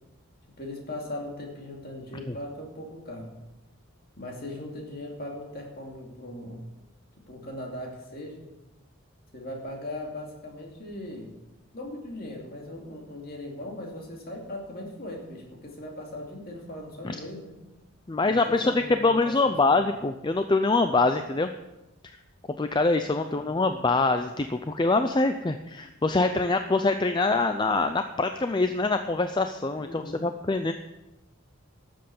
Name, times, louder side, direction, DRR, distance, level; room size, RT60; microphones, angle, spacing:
voice 1, 0.6-3.4 4.2-6.7 7.3-8.4 9.3-11.4 11.7-17.5 18.2-19.9 23.2-23.6 29.8-30.3, left 1 dB, 45° left, 0 dB, 2.6 m, -39 dB
voice 2, 18.1-21.5 22.6-30.7, left 3 dB, 20° left, 8 dB, 0.4 m, -24 dB
12.0 x 7.8 x 7.0 m, 0.98 s
head